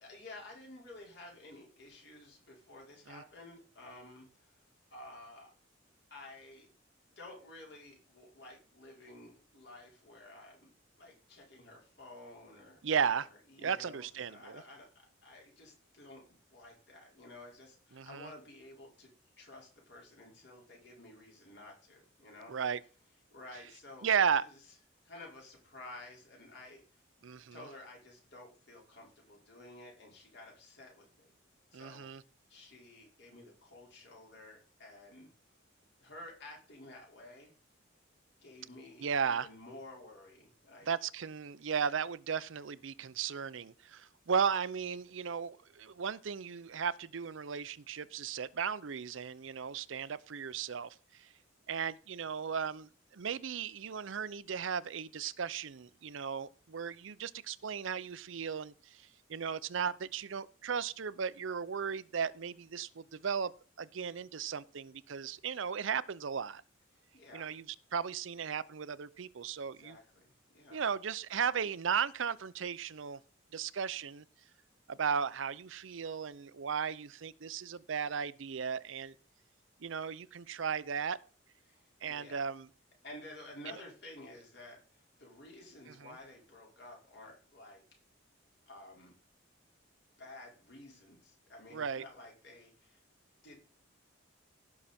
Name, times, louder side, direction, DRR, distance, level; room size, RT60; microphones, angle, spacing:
voice 1, 0.0-4.5 4.9-5.5 6.1-6.7 7.2-10.7 11.0-12.8 13.5-16.2 16.5-19.1 19.4-22.5 23.3-24.1 24.4-24.6 25.0-27.0 27.5-31.3 31.7-32.1 32.5-35.3 36.0-37.5 38.4-40.9 66.9-67.6 69.6-70.9 81.7-82.5 83.0-88.0 88.7-89.1 90.2-93.0 93.4-93.6, left 2 dB, 55° left, 4.7 m, -52 dB
voice 2, 12.8-13.3 13.6-14.6 17.9-18.3 22.5-22.8 24.0-24.4 27.2-27.6 31.7-32.2 39.0-39.5 40.9-51.3 51.7-59.0 59.3-63.5 63.8-66.6 67.3-67.6 67.9-70.0 70.7-73.2 73.5-74.2 74.9-79.1 79.8-81.2 82.0-82.7 86.0-86.1 91.7-92.0, right 7 dB, 75° right, 0.5 m, -35 dB
16.5 x 5.9 x 4.3 m
head